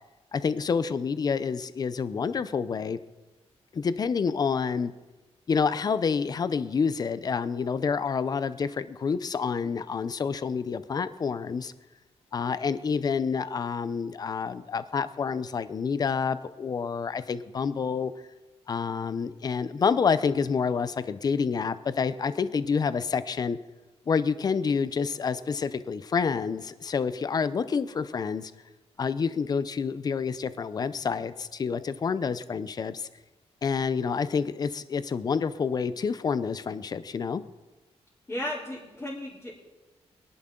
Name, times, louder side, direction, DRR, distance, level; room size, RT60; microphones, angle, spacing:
voice 1, 0.3-3.0 3.7-4.9 5.5-11.7 12.3-18.1 18.7-23.6 24.1-28.5 29.0-33.1 33.6-37.4, left 5 dB, 35° left, 14 dB, 0.6 m, -28 dB
voice 2, 38.3-39.5, left 1 dB, 20° left, -9 dB, 3.5 m, -34 dB
24.0 x 11.0 x 3.8 m, 1.2 s
wide cardioid pair, 170°, 11 cm